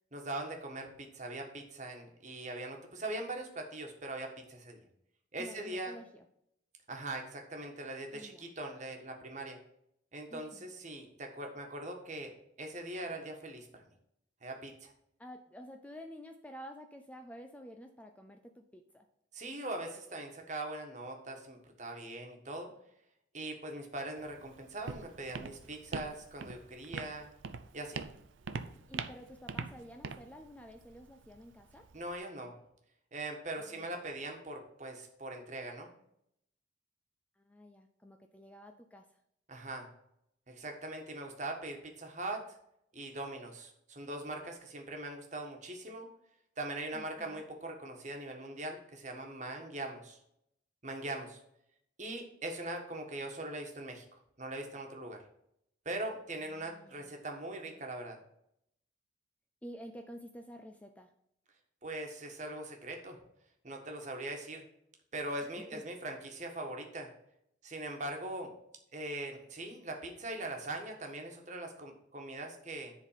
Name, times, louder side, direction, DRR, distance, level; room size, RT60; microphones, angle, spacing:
voice 1, 0.1-4.8 5.3-5.9 6.9-9.6 10.1-12.3 12.6-13.8 14.4-14.9 19.3-22.7 23.3-27.3 27.7-28.0 31.9-32.5 33.1-35.9 39.5-39.9 40.5-42.6 42.9-46.1 46.6-50.2 50.8-51.4 52.0-55.2 55.8-58.2 61.8-63.2 63.6-64.7 65.1-67.1 67.6-68.5 68.9-72.9, right 2 dB, 40° right, 3 dB, 1.4 m, -41 dB
voice 2, 5.4-6.3 8.1-8.5 10.3-10.7 15.2-19.1 28.9-31.9 33.6-34.1 37.4-39.1 46.9-47.4 56.4-57.2 59.6-61.1 65.6-65.8, equal, 5° left, 5 dB, 0.4 m, -50 dB
Walk footsteps, 24.2-32.2, right 4 dB, 85° right, 0.6 m, -44 dB
10.0 x 3.9 x 5.6 m, 0.75 s
head